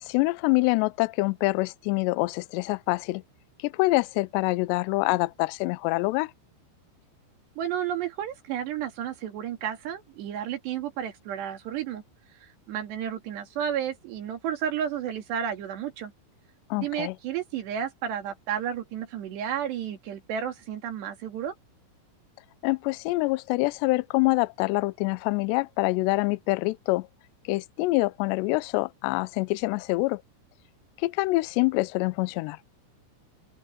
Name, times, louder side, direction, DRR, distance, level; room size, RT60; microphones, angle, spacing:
voice 1, 0.0-3.2 3.6-6.3 16.7-17.2 22.6-27.1 27.5-30.2 31.0-32.6, left 22 dB, 85° left, 2.5 m, -25 dB
voice 2, 7.6-12.0 12.4-16.1 16.8-21.5, right 9 dB, 65° right, 4.4 m, -32 dB
open air
omnidirectional pair, 5.6 m